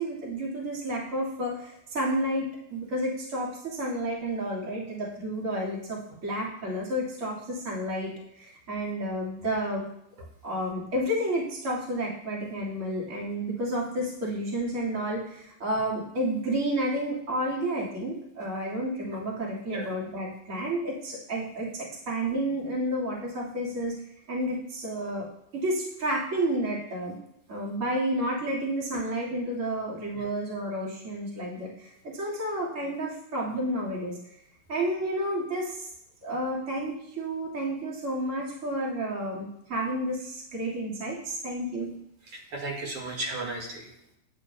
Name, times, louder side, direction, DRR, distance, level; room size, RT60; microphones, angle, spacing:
voice 1, 0.0-9.8 10.4-23.9 24.3-25.3 25.5-27.2 27.5-34.2 34.7-35.9 36.2-41.9, right 1 dB, 30° right, -5 dB, 1.7 m, -31 dB
voice 2, 42.3-43.9, right 2 dB, 50° right, 0 dB, 2.2 m, -35 dB
10.5 x 7.7 x 2.2 m, 0.78 s
omnidirectional pair, 3.5 m